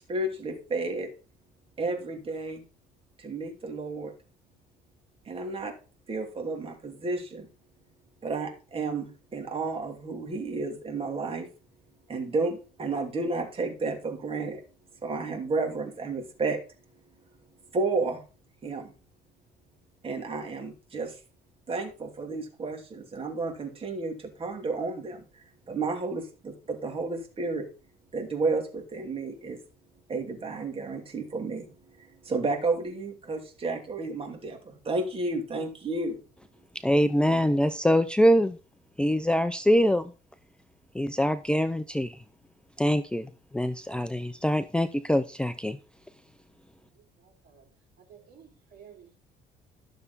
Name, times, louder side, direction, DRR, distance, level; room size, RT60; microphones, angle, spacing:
voice 1, 0.1-1.1 1.8-2.6 3.2-4.1 5.3-5.7 6.1-7.5 8.2-11.5 12.1-14.6 15.0-16.6 17.7-18.2 18.6-18.9 20.0-21.1 21.7-25.2 25.7-27.7 28.1-29.6 30.1-31.7 32.2-36.2, right 3 dB, 35° right, 2.8 m, -31 dB
voice 2, 36.8-38.6 39.0-40.1 40.9-42.2 42.8-45.8, equal, 5° left, 0.6 m, -24 dB
voice 3, 46.9-47.7 48.0-49.2, right 8 dB, 65° right, 3.9 m, -54 dB
12.0 x 7.0 x 4.1 m
cardioid pair, 110°, 17 cm